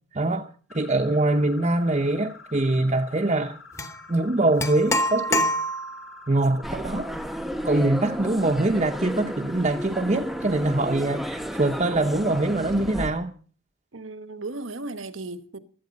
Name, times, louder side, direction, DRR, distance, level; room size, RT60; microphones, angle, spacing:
voice 1, 0.1-3.6 4.1-5.4 6.3-7.1 7.6-13.3, right 2 dB, 35° right, 0.8 m, -23 dB
sound 1, 0.7-12.8, left 5 dB, 85° left, 5.0 m, -47 dB
sound 2, 3.8-3.9 4.6-6.1, equal, 15° left, 1.3 m, -25 dB
sound 3, 6.6-13.1, equal, ahead, 0.9 m, -33 dB
voice 2, 13.9-15.6, right 2 dB, 75° right, 1.2 m, -35 dB
16.5 x 12.5 x 5.3 m
head